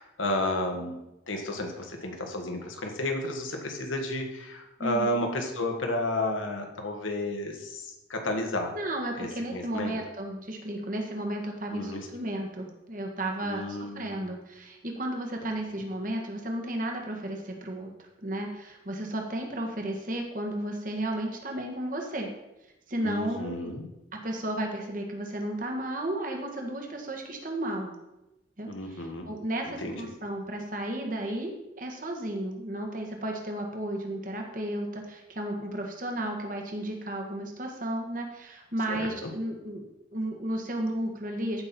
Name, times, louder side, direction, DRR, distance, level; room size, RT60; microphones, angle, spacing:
voice 1, 0.0-8.7 9.2-10.0 11.7-12.1 13.4-14.2 23.0-23.9 28.7-29.3 29.7-30.0 38.9-39.3, left 1 dB, 85° left, 2 dB, 1.8 m, -32 dB
voice 2, 4.8-5.2 8.7-22.3 22.9-23.8 24.1-27.9 28.6-39.8 40.1-41.6, right 1 dB, 45° right, 2 dB, 1.7 m, -33 dB
14.5 x 5.8 x 4.4 m, 0.94 s
head